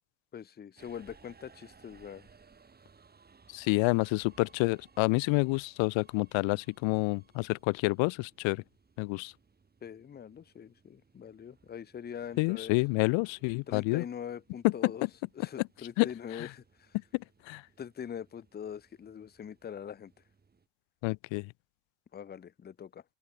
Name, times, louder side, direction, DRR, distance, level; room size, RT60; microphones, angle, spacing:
voice 1, 0.3-2.3 9.8-12.8 13.7-15.1 15.3-17.0 17.8-20.1 22.1-23.0, left 8 dB, 20° left, 0.8 m, -43 dB
Subway metro underground, 0.8-20.7, right 5 dB, 20° right, 5.7 m, -63 dB
voice 2, 3.5-8.6 9.0-9.3 12.4-14.0 14.6-14.7 16.0-16.1 17.5-17.6 21.0-21.5, left 26 dB, 85° left, 0.9 m, -28 dB
open air
cardioid pair, 145°, 44 cm